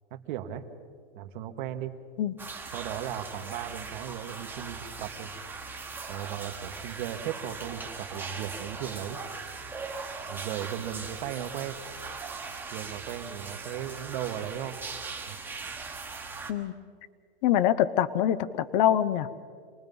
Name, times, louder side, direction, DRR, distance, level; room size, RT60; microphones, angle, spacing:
voice 1, 0.1-0.6 1.1-1.9 2.7-5.3 6.1-9.2 10.3-11.8 12.7-14.8 15.2-15.4, right 10 dB, 50° right, 6 dB, 1.5 m, -36 dB
sound 1, 2.4-16.5, right 4 dB, 5° right, 1.3 m, -40 dB
voice 2, 17.4-19.5, left 11 dB, 45° left, 15 dB, 0.8 m, -25 dB
27.0 x 19.5 x 5.4 m, 2.1 s
supercardioid pair, 155°, 32 cm